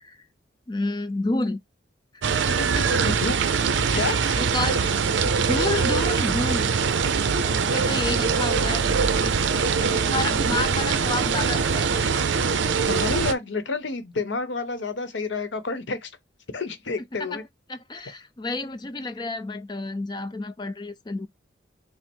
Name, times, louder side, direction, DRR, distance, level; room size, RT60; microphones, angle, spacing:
voice 1, 0.7-1.6 2.5-3.1 3.7-4.1 4.4-6.7 7.4-9.4 9.8-12.1 17.2-17.4 17.7-21.3, left 2 dB, 20° left, 0.4 m, -30 dB
sound 1, 2.2-13.3, right 5 dB, 75° right, 0.5 m, -23 dB
voice 2, 3.1-3.4 3.9-4.2 12.8-16.1 16.5-17.4, left 3 dB, 70° left, 0.9 m, -29 dB
6.0 x 2.0 x 4.4 m
head